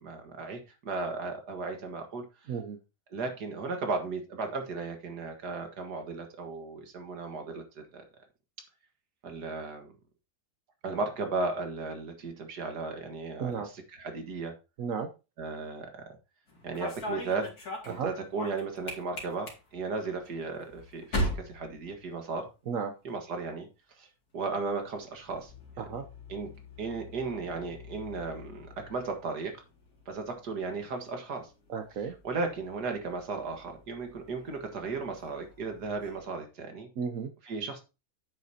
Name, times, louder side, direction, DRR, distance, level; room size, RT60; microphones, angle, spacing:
voice 1, 0.0-2.3 3.1-8.0 9.2-9.9 10.8-14.5 15.4-15.9 16.6-17.6 17.8-22.5 23.0-23.7 24.0-24.1 24.3-25.9 26.3-26.5 26.8-29.6 30.1-31.5 32.2-36.9 37.4-37.8, right 4 dB, 90° right, 2.2 m, -35 dB
voice 2, 14.8-15.1 17.9-18.1 22.7-22.9 25.8-26.0 31.7-32.1 37.0-37.3, right 6 dB, 60° right, 1.1 m, -33 dB
sound 1, 16.5-22.7 22.9-23.5 24.6-36.2, equal, 70° left, 2.8 m, -42 dB
9.2 x 8.0 x 2.8 m
omnidirectional pair, 1.7 m